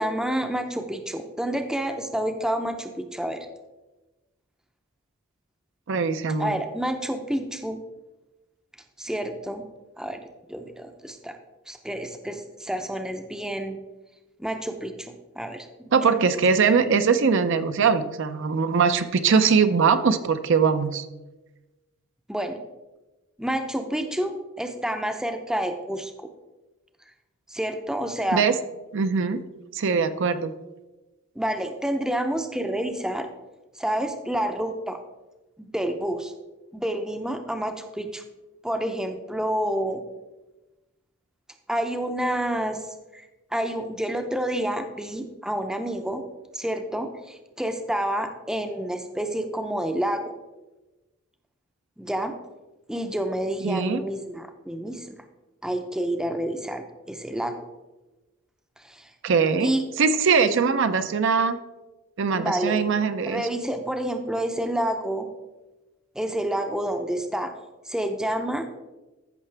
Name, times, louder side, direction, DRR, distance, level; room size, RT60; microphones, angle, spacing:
voice 1, 0.0-3.5 6.4-7.8 9.0-9.7 10.0-10.2 10.5-11.4 11.7-13.8 14.4-15.7 16.6-16.9 22.3-22.6 23.4-26.3 27.5-28.4 31.4-33.3 33.7-35.0 35.6-36.3 36.7-38.2 38.6-40.0 41.7-42.8 43.1-46.2 46.5-50.3 52.0-52.4 52.9-55.2 55.6-57.6 58.8-59.1 59.6-59.8 62.3-62.8 63.3-65.3 66.2-67.5 67.9-68.7, right 1 dB, 5° right, 6 dB, 0.5 m, -29 dB
voice 2, 5.9-6.6 15.9-21.1 28.3-28.6 28.9-29.4 29.7-30.5 53.6-54.0 59.2-59.7 60.0-61.6 62.2-63.4, right 5 dB, 60° right, 10 dB, 0.5 m, -21 dB
14.5 x 5.8 x 3.3 m, 1.1 s
head